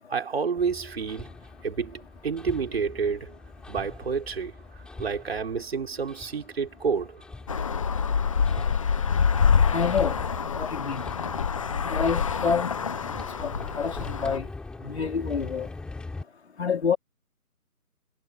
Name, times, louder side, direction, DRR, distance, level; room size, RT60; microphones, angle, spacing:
voice 1, 0.1-1.3 1.6-3.4 3.7-7.2, right 5 dB, 45° right, 3.9 m, -29 dB
Hammer, 0.6-16.2, left 3 dB, ahead, 7.2 m, -42 dB
Traffic noise roadway noise, 7.5-14.4, left 6 dB, 20° left, 1.5 m, -26 dB
voice 2, 9.7-10.2 10.4-11.0 11.8-12.7 13.4-14.5 14.8-15.7 16.6-17.0, left 6 dB, 45° left, 3.3 m, -27 dB
figure-of-eight pair, 165°, 44 cm